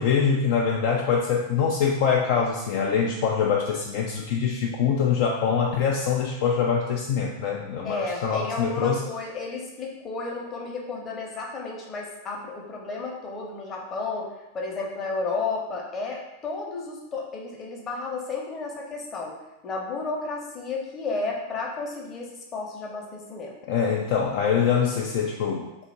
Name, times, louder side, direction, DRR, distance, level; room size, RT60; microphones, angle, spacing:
voice 1, 0.0-9.0 23.7-25.7, left 6 dB, 50° left, -1 dB, 0.3 m, -24 dB
voice 2, 7.8-19.3 19.6-23.6, left 3 dB, 25° left, -1 dB, 0.8 m, -32 dB
2.8 x 2.4 x 4.1 m, 0.95 s
figure-of-eight pair, 90°, 0 cm